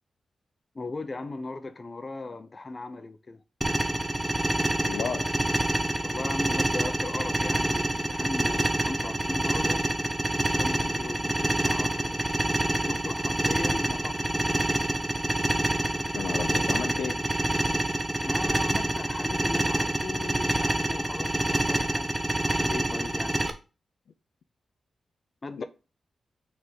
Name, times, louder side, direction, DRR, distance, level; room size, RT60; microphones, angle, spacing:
voice 1, 0.7-3.4 6.0-9.8 10.6-12.2 12.7-14.3 18.2-22.1 22.4-23.3 25.4-25.6, left 3 dB, 30° left, 0.7 m, -37 dB
sound 1, 3.6-23.5, right 1 dB, 10° right, 0.8 m, -27 dB
voice 2, 4.8-5.3 16.1-17.2 25.6-25.7, left 6 dB, 75° left, 0.5 m, -32 dB
6.2 x 3.7 x 4.6 m
wide cardioid pair, 110°, 0 cm